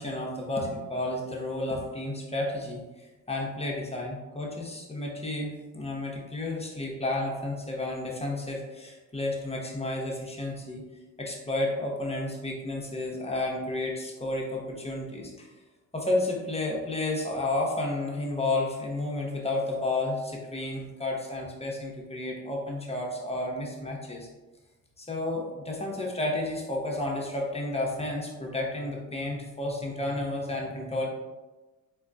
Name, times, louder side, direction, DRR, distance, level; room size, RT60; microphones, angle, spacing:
voice 1, 0.0-2.8 3.3-10.8 11.2-15.5 15.9-24.3 25.0-31.1, left 2 dB, 15° left, -2 dB, 1.0 m, -31 dB
3.7 x 3.6 x 2.3 m, 1.1 s
hypercardioid pair, 55°, 39 cm